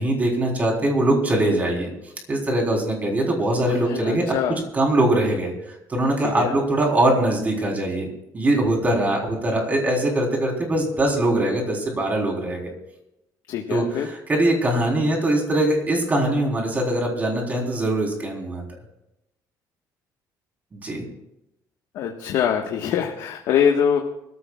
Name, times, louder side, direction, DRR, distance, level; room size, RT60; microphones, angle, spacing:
voice 1, 0.0-1.9 2.3-4.4 4.7-8.1 8.3-12.7 13.7-18.6 20.7-21.0, right 1 dB, 25° right, 0 dB, 3.9 m, -22 dB
voice 2, 3.7-4.6 6.2-6.6 13.5-14.1 21.9-24.0, left 8 dB, 75° left, 1 dB, 1.5 m, -23 dB
24.5 x 14.0 x 2.4 m, 0.86 s
cardioid pair, 150°, 7 cm